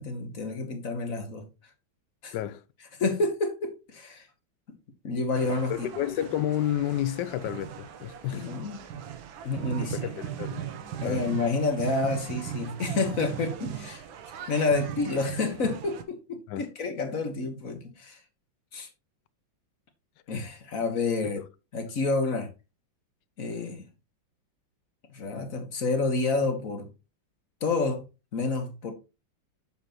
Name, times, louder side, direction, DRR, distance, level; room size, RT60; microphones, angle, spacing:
voice 1, 0.0-1.5 2.2-2.3 2.9-4.3 5.0-5.9 8.3-9.0 9.4-10.1 11.0-14.0 14.5-18.2 18.7-18.9 20.3-21.4 21.7-22.5 23.4-23.9 25.1-26.9 27.6-28.0 28.3-28.9, left 3 dB, 50° left, 1.6 m, -29 dB
voice 2, 2.3-2.6 5.7-8.5 9.8-10.7 11.0-11.3 16.5-16.7 21.2-21.3, left 11 dB, 75° left, 1.1 m, -31 dB
sound 1, 5.4-16.0, right 10 dB, 90° right, 1.7 m, -38 dB
7.3 x 7.0 x 3.0 m
omnidirectional pair, 2.1 m